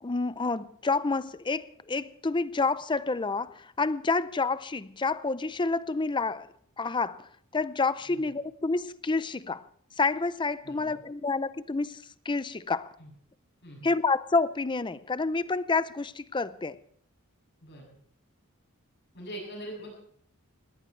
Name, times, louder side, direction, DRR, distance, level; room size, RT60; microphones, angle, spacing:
voice 1, 0.0-6.5 6.8-7.3 7.5-9.6 10.0-12.9 13.8-16.8, left 3 dB, 20° left, 0.5 m, -29 dB
voice 2, 10.6-11.0 13.0-13.1 13.6-13.9 17.6-18.0 19.1-19.9, right 1 dB, 50° left, 7.6 m, -42 dB
20.5 x 17.5 x 3.3 m
head